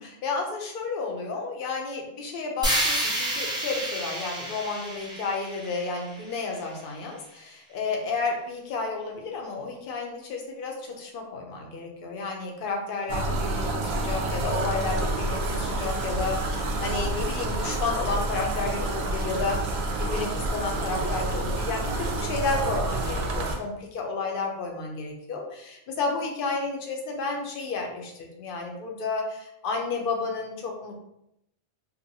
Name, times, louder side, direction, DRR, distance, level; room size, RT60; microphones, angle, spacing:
voice 1, 0.0-19.6 20.0-30.9, left 4 dB, 60° left, 1 dB, 0.7 m, -31 dB
sound 1, 2.6-6.7, right 1 dB, 5° right, 0.5 m, -30 dB
sound 2, 13.1-23.6, right 2 dB, 75° right, 0.8 m, -28 dB
2.7 x 2.2 x 2.6 m, 0.80 s
omnidirectional pair, 1.1 m